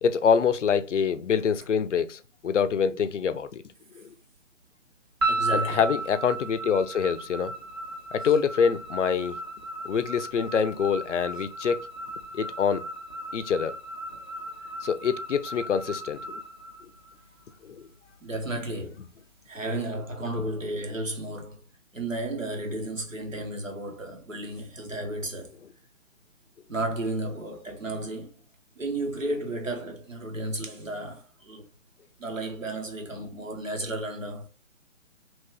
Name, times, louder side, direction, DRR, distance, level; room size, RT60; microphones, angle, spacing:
voice 1, 0.0-3.6 4.0-4.1 5.5-7.5 8.1-9.4 9.8-11.9 12.3-12.8 13.3-13.8 14.8-16.4 17.6-17.8, left 6 dB, 70° left, 0.5 m, -25 dB
sound 1, 5.2-17.5, right 2 dB, 20° right, 0.5 m, -35 dB
voice 2, 5.3-5.9 18.2-19.0 19.5-21.6 21.9-25.5 26.7-28.4 28.7-31.6 32.2-34.5, right 1 dB, 90° right, 1.3 m, -33 dB
3.1 x 2.7 x 3.2 m
figure-of-eight pair, 140°, 38 cm